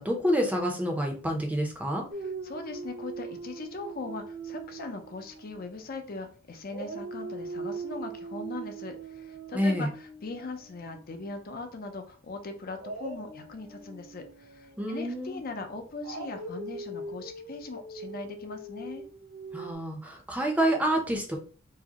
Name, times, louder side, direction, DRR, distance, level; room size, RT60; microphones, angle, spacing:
voice 1, 0.0-2.0 9.5-9.9 14.8-15.4 19.5-21.4, equal, 5° right, 2 dB, 0.6 m, -28 dB
Dog, 2.1-6.3 6.7-11.7 12.8-19.7, right 3 dB, 80° right, 0.9 m, -41 dB
voice 2, 2.2-19.0, left 3 dB, 45° left, 5 dB, 0.5 m, -40 dB
4.7 x 2.1 x 2.8 m, 0.39 s
head